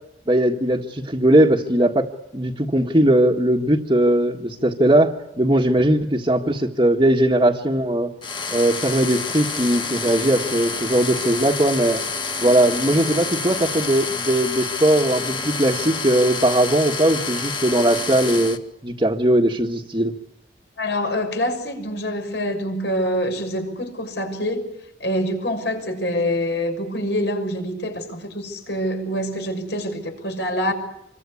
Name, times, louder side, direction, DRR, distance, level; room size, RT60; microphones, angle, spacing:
voice 1, 0.3-2.0 2.3-8.1 8.5-12.0 12.4-18.6 18.8-20.1, right 1 dB, 25° right, 1.7 m, -19 dB
sound 1, 8.2-18.6, left 4 dB, 25° left, 1.9 m, -28 dB
voice 2, 20.8-24.7 25.0-30.7, equal, 70° left, 6.3 m, -25 dB
26.5 x 23.5 x 8.5 m
head